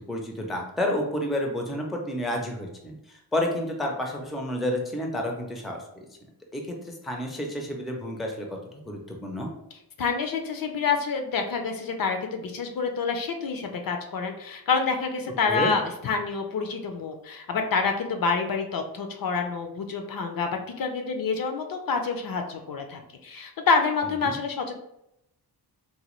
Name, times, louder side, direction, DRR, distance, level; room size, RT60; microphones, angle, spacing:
voice 1, 0.0-6.1 6.5-8.5 8.9-9.5 15.5-15.7 24.2-24.3, left 1 dB, ahead, 1 dB, 0.4 m, -30 dB
voice 2, 10.0-20.5 20.8-24.8, left 5 dB, 60° left, 5 dB, 0.5 m, -27 dB
4.1 x 2.2 x 3.0 m, 0.82 s
wide cardioid pair, 150°, 40 cm